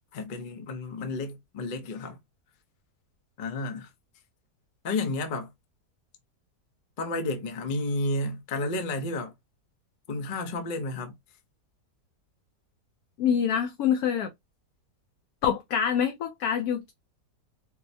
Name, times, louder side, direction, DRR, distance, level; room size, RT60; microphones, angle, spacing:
voice 1, 0.1-2.2 3.4-3.9 4.8-5.5 7.0-9.3 10.1-11.1, left 2 dB, 45° left, 0.6 m, -31 dB
voice 2, 13.2-14.3 15.4-16.9, left 8 dB, 70° left, 1.1 m, -26 dB
4.6 x 2.0 x 2.6 m
omnidirectional pair, 1.8 m